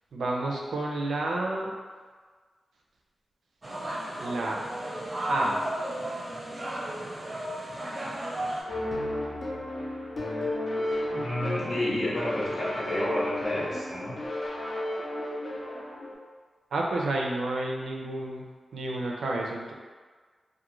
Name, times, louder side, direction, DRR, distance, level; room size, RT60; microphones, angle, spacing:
voice 1, 0.1-1.7 4.2-4.6 5.3-5.6 16.7-18.5 18.7-19.7, right 2 dB, 90° right, -1 dB, 0.4 m, -30 dB
sound 1, 3.6-8.6, right 1 dB, 25° right, 0.5 m, -34 dB
sound 2, 8.7-16.1, left 1 dB, 50° left, 0.5 m, -33 dB
voice 2, 11.1-14.2, left 1 dB, 70° left, -8 dB, 0.9 m, -30 dB
2.4 x 2.1 x 2.9 m, 1.5 s
wide cardioid pair, 95°, 0 cm